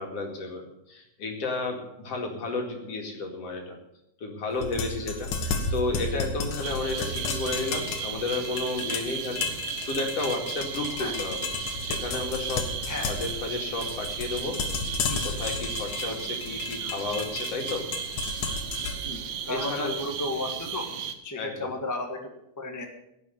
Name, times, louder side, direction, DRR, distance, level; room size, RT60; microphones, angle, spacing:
voice 1, 0.0-3.8 4.2-9.5 9.8-11.5 11.8-14.6 15.2-17.9 19.5-20.0 21.4-21.7, left 3 dB, 55° left, 2 dB, 3.1 m, -32 dB
sound 1, 4.5-20.6, left 4 dB, 75° left, 3.0 m, -33 dB
sound 2, 6.6-21.1, right 8 dB, 70° right, 1.1 m, -35 dB
voice 2, 19.5-20.9 21.2-22.8, left 2 dB, 10° left, 3 dB, 0.8 m, -33 dB
17.0 x 7.0 x 8.1 m, 0.84 s
omnidirectional pair, 3.5 m